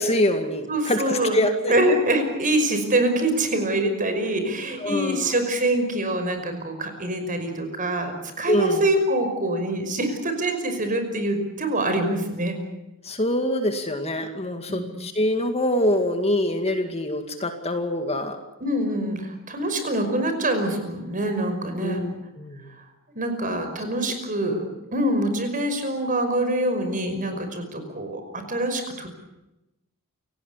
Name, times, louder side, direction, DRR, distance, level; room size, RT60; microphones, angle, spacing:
voice 1, 0.0-1.7 4.8-5.3 8.5-8.8 13.0-18.4 21.8-22.7 24.5-24.7, left 1 dB, 30° left, 6 dB, 2.2 m, -25 dB
voice 2, 0.7-1.4 1.7-12.6 14.7-14.9 18.6-22.0 23.2-24.7 24.9-29.1, right 1 dB, 40° right, 7 dB, 5.5 m, -25 dB
29.0 x 18.0 x 8.3 m, 0.93 s
head